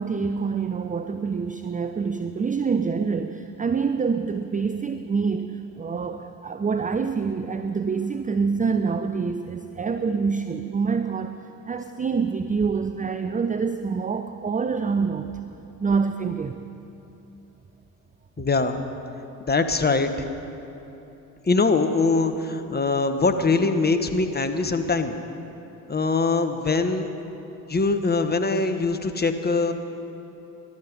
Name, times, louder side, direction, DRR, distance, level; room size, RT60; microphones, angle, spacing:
voice 1, 0.0-11.4 11.7-15.3 15.8-16.6, right 5 dB, 20° right, 9 dB, 0.6 m, -26 dB
voice 2, 18.4-18.8 19.4-20.1 21.4-25.1 25.9-27.1 27.7-29.7, left 3 dB, 20° left, 7 dB, 1.3 m, -22 dB
20.0 x 12.0 x 5.4 m, 3.0 s
hypercardioid pair, 50°, 45 cm